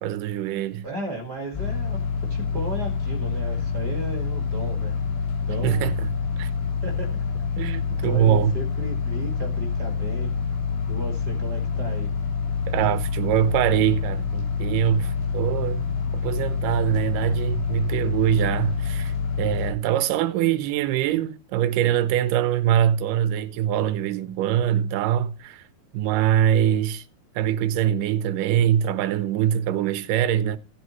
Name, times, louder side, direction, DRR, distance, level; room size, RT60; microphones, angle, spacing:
voice 1, 0.0-0.9 5.6-6.1 6.4-6.5 7.6-8.5 12.7-15.9 16.1-25.7 25.9-27.0 27.4-30.6, right 10 dB, 75° right, 2.1 m, -23 dB
voice 2, 0.8-2.0 2.3-4.9 5.5-5.9 6.8-7.2 8.0-10.3 10.9-12.1, right 1 dB, 35° right, 1.9 m, -34 dB
sound 1, 1.5-19.7, left 5 dB, 90° left, 5.2 m, -27 dB
17.0 x 7.9 x 3.1 m
omnidirectional pair, 4.6 m